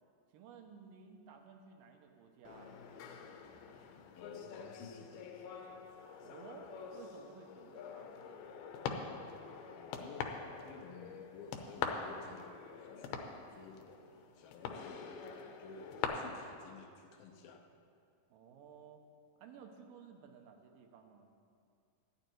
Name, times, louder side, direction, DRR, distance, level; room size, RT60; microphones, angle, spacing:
voice 1, 0.3-2.8 6.2-8.6 18.3-19.0 19.4-21.3, right 6 dB, 75° right, 4 dB, 2.4 m, -56 dB
sound 1, 2.5-16.1, left 7 dB, 90° left, 2.7 m, -45 dB
voice 2, 4.2-5.6 9.8-15.3 15.6-17.7, left 5 dB, 75° left, 3 dB, 2.2 m, -54 dB
13.5 x 9.9 x 4.5 m, 2.4 s
omnidirectional pair, 4.3 m